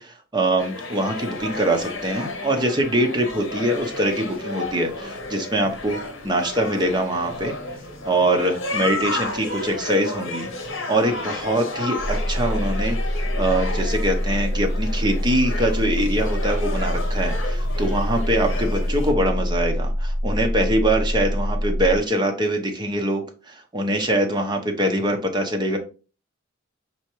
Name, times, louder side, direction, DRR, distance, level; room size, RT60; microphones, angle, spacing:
voice 1, 0.0-6.0 6.2-7.5 8.0-10.5 10.9-25.8, right 1 dB, 20° right, 4 dB, 0.7 m, -23 dB
sound 1, 0.6-19.1, left 2 dB, 65° left, 1.0 m, -32 dB
sound 2, 12.0-22.0, equal, 5° left, 0.8 m, -25 dB
4.4 x 3.4 x 3.0 m, 0.34 s
head